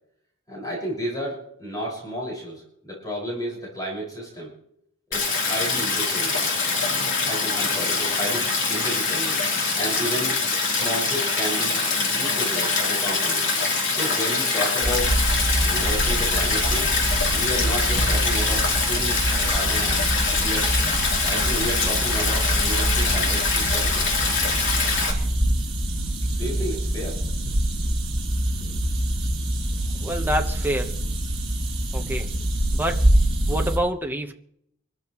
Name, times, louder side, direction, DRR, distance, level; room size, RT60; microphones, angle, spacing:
voice 1, 0.5-4.5 5.1-6.5 7.3-9.5 9.7-11.8 12.1-13.5 13.9-15.2 15.6-17.0 17.3-20.0 20.4-20.7 21.2-24.2 26.3-27.2 27.8-27.9 28.6-28.8, equal, 20° left, -4 dB, 5.7 m, -32 dB
Stream, 5.1-25.1, left 4 dB, 60° left, 3.6 m, -24 dB
sound 1, 14.8-33.8, right 1 dB, 30° right, 6.1 m, -25 dB
voice 2, 29.9-31.0 31.9-32.3 32.7-33.1 33.5-34.3, right 1 dB, 10° right, 4 dB, 1.2 m, -27 dB
25.5 x 14.0 x 3.2 m, 0.72 s
head